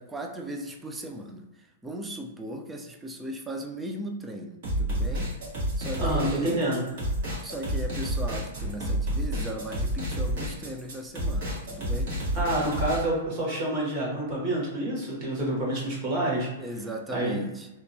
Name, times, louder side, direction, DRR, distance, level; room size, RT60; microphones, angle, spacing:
voice 1, 0.0-5.3 5.8-6.8 7.4-12.1 16.6-17.7, right 1 dB, 10° right, 3 dB, 0.3 m, -37 dB
sound 1, 4.6-13.0, equal, 65° right, 1.3 m, -29 dB
voice 2, 6.0-6.8 12.3-16.5 17.1-17.4, right 1 dB, 45° right, -4 dB, 1.3 m, -28 dB
2.7 x 2.2 x 2.7 m, 1.0 s
hypercardioid pair, 140°, 0 cm